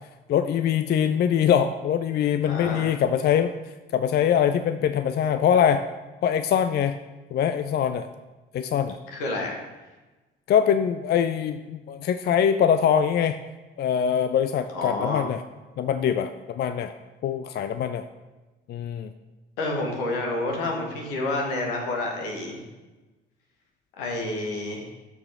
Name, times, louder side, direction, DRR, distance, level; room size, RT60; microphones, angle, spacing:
voice 1, 0.3-3.6 3.9-5.9 6.2-7.0 7.3-8.1 8.5-9.0 10.5-13.4 13.8-15.4 15.8-16.9 17.2-18.1 18.7-19.1, left 8 dB, 35° left, 10 dB, 0.4 m, -23 dB
voice 2, 2.4-2.9 9.1-9.5 14.7-15.2 19.6-22.6 24.0-24.9, left 2 dB, 70° left, 1 dB, 1.6 m, -29 dB
13.0 x 4.9 x 3.5 m, 1.2 s
figure-of-eight pair, 45°, 29 cm